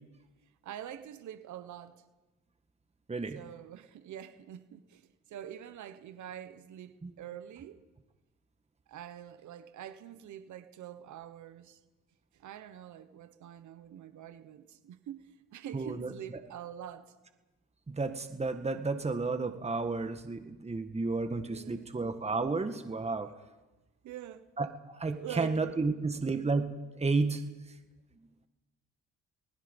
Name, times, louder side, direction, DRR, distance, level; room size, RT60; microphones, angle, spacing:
voice 1, 0.6-2.0 3.3-7.8 8.9-11.8 12.3-17.1 21.4-21.9 24.0-24.5 25.1-25.6, right 10 dB, 75° right, 1.2 m, -45 dB
voice 2, 3.1-3.4 7.0-7.1 15.7-16.1 17.9-23.3 24.6-27.4, right 3 dB, 20° right, 1.6 m, -32 dB
28.5 x 20.0 x 5.4 m
cardioid pair, 90°, 30 cm